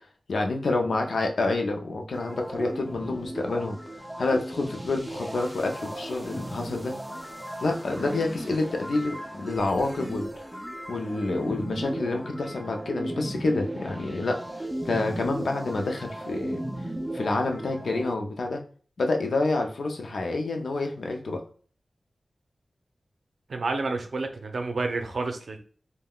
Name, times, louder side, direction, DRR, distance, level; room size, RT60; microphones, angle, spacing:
voice 1, 0.3-3.8 4.2-6.9 7.6-10.4 10.9-16.6 17.1-18.6 19.0-21.4, left 2 dB, 80° left, 3 dB, 0.5 m, -28 dB
sound 1, 2.1-18.1, right 1 dB, 10° right, 0.4 m, -36 dB
voice 2, 23.5-25.6, right 3 dB, 75° right, 5 dB, 0.5 m, -29 dB
3.4 x 2.1 x 2.3 m, 0.43 s
cardioid pair, 55°, 0 cm